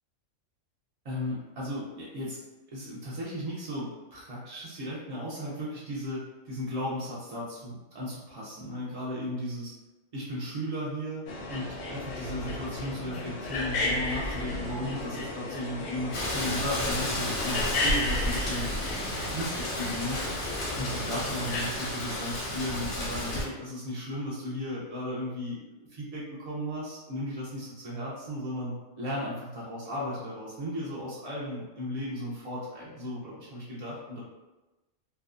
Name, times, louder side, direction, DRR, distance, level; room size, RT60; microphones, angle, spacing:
voice 1, 1.0-2.4 2.7-9.7 10.1-11.2 11.5-18.9 19.3-25.6 25.9-34.2, left 1 dB, 60° right, -7 dB, 0.4 m, -35 dB
sound 1, 11.3-21.6, left 2 dB, 65° left, 0.7 m, -34 dB
Rain, 16.1-23.4, left 1 dB, 85° left, 1.2 m, -32 dB
2.6 x 2.2 x 2.4 m, 1.1 s
omnidirectional pair, 1.4 m